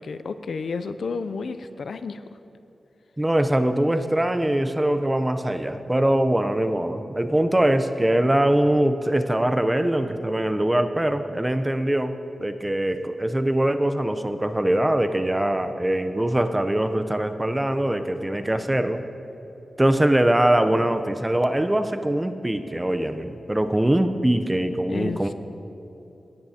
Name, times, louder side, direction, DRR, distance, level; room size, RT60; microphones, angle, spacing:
voice 1, 0.0-2.2 24.9-25.3, left 4 dB, 75° left, 11 dB, 0.4 m, -31 dB
voice 2, 3.2-12.1 12.4-19.0 19.8-25.3, right 1 dB, 15° right, 9 dB, 0.6 m, -22 dB
17.0 x 10.5 x 2.8 m, 2.9 s
cardioid pair, 60°, 0 cm